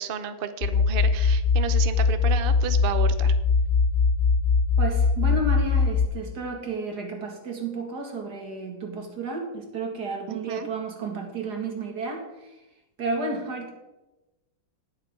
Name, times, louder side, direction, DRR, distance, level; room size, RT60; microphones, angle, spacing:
voice 1, 0.0-3.3 10.3-10.7, right 7 dB, 80° right, 10 dB, 0.5 m, -32 dB
sound 1, 0.6-6.1, left 4 dB, 70° left, 0.5 m, -21 dB
voice 2, 4.8-12.5 13.0-13.7, right 3 dB, 55° right, 2 dB, 2.6 m, -32 dB
18.5 x 7.8 x 3.7 m, 1.0 s
omnidirectional pair, 2.1 m